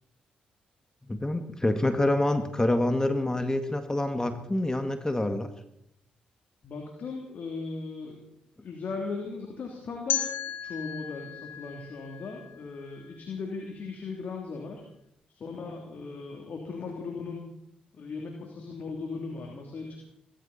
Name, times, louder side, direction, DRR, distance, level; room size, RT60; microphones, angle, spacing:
voice 1, 1.1-5.5, left 1 dB, 20° left, 7 dB, 1.9 m, -26 dB
voice 2, 6.6-8.2 8.6-10.2 10.6-14.8 15.3-17.4 17.9-20.0, left 4 dB, 60° left, 0 dB, 3.2 m, -37 dB
sound 1, 10.1-13.0, left 10 dB, 80° left, 1.1 m, -35 dB
21.5 x 13.5 x 4.4 m, 0.78 s
hypercardioid pair, 45°, 3 cm